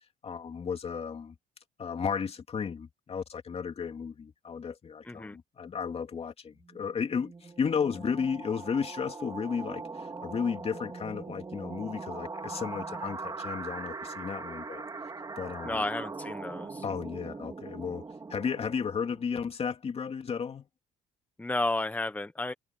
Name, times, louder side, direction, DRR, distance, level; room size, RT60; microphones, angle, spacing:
voice 1, 0.2-1.3 1.8-14.8 15.4-15.8 16.8-18.0 18.3-20.7, left 6 dB, 35° left, 2.4 m, -34 dB
voice 2, 5.0-5.4 15.6-16.8 21.4-22.5, left 2 dB, 10° left, 1.3 m, -32 dB
sound 1, 6.7-19.3, right 4 dB, 25° right, 4.7 m, -41 dB
cardioid pair, 110°, 17 cm